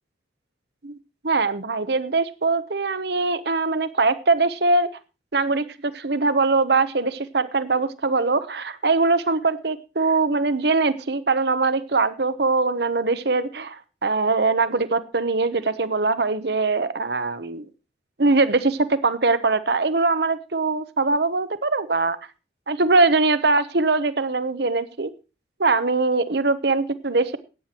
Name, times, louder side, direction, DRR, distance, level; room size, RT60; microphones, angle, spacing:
voice 1, 1.2-4.9 5.3-17.7 18.2-22.2 22.7-25.1 25.6-27.4, right 3 dB, 60° right, 14 dB, 1.0 m, -22 dB
14.5 x 9.5 x 4.4 m, 0.31 s
head